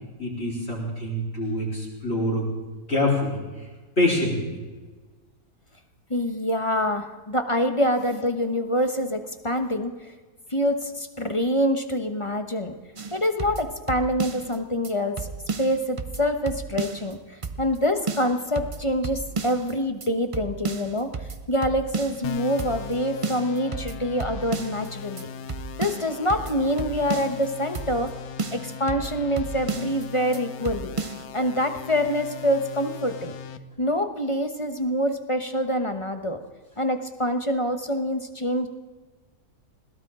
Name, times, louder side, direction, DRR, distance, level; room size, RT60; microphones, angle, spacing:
voice 1, 0.2-2.5 2.9-3.4 4.0-4.6, left 1 dB, 40° left, -5 dB, 4.5 m, -25 dB
voice 2, 6.1-10.1 10.5-12.7 13.1-15.3 15.6-25.3 25.8-28.1 28.5-30.9 31.3-33.3 33.8-36.4 36.8-38.7, equal, 25° left, 7 dB, 1.0 m, -26 dB
sound 1, 13.0-14.6 14.8-14.9 15.2-17.1 17.4-17.8 18.1-19.7 20.0-20.1 20.3-22.3 22.6-22.9 23.2-24.9 25.2-25.3 25.5-27.5 27.7-28.1 28.4-30.0 30.3-30.4 30.6-31.2, right 4 dB, 40° right, 0.4 m, -33 dB
sound 2, 22.2-33.6, left 7 dB, 75° left, 1.2 m, -39 dB
21.0 x 17.0 x 3.7 m, 1.3 s
omnidirectional pair, 1.6 m